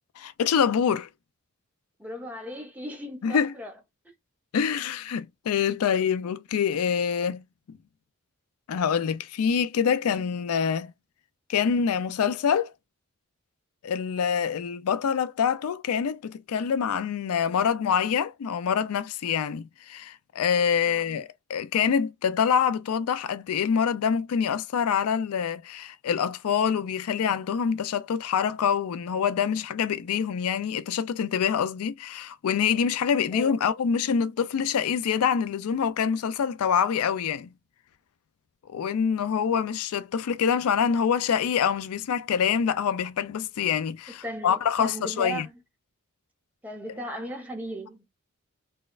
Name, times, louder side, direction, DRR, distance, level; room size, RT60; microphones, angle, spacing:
voice 1, 0.2-1.1 3.2-3.5 4.5-7.4 8.7-10.9 11.5-12.7 13.8-37.5 38.7-45.5, left 7 dB, 90° left, 0.4 m, -25 dB
voice 2, 2.0-3.7 20.9-21.2 33.3-33.5 44.1-45.5 46.6-48.0, equal, 5° right, 0.8 m, -37 dB
4.1 x 2.2 x 2.3 m
head